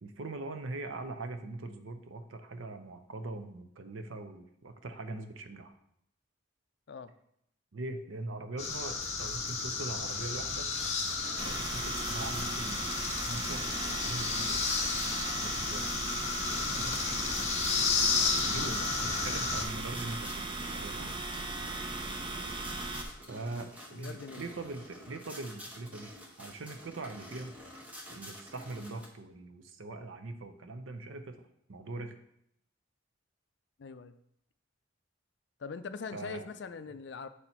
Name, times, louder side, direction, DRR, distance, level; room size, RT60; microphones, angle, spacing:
voice 1, 0.0-5.7 7.7-10.7 11.4-12.9 13.3-14.6 15.1-16.0 16.4-17.3 18.4-21.3 21.6-21.7 23.3-26.1 26.4-27.6 28.1-31.4 31.7-32.1 36.1-36.5, right 2 dB, 80° right, 7 dB, 0.7 m, -42 dB
sound 1, 8.6-19.6, left 4 dB, 35° left, 0.9 m, -32 dB
sound 2, 10.7-29.1, equal, 5° right, 0.9 m, -49 dB
sound 3, 11.4-23.0, right 2 dB, 25° right, 0.6 m, -38 dB
voice 2, 18.2-19.1 21.0-21.2 23.9-24.5 33.8-34.1 35.6-37.3, left 5 dB, 60° left, 10 dB, 0.4 m, -43 dB
6.8 x 4.2 x 4.4 m, 0.74 s
head